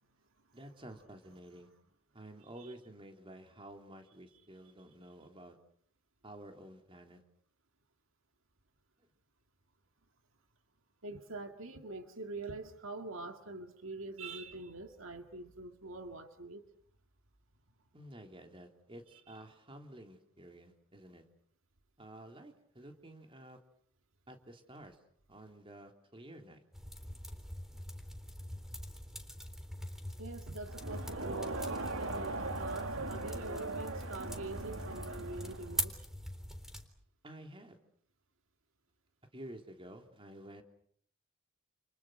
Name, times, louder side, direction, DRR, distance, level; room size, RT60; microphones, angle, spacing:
voice 1, 0.5-1.7 2.1-5.6 6.2-7.2 17.9-21.2 22.0-23.6 24.3-25.0 25.3-26.6 37.2-37.8 39.3-40.6, right 1 dB, 25° right, 4 dB, 3.5 m, -51 dB
voice 2, 11.0-16.6 30.2-35.9, right 2 dB, 70° right, 6 dB, 2.2 m, -44 dB
sound 1, 26.7-36.9, equal, ahead, 3.7 m, -43 dB
Crowd, 30.7-35.9, right 2 dB, 90° right, 2.5 m, -40 dB
30.0 x 29.5 x 6.5 m, 0.64 s
head